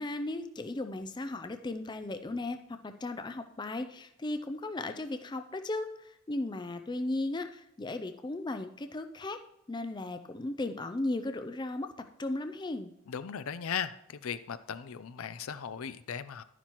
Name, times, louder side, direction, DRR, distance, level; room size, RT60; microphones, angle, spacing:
voice 1, 0.0-2.6 2.8-9.4 9.7-11.9 12.2-12.9, left 2 dB, 20° left, 8 dB, 0.4 m, -36 dB
voice 2, 13.1-16.4, left 7 dB, 75° left, 14 dB, 0.5 m, -37 dB
11.5 x 10.0 x 3.0 m, 0.81 s
head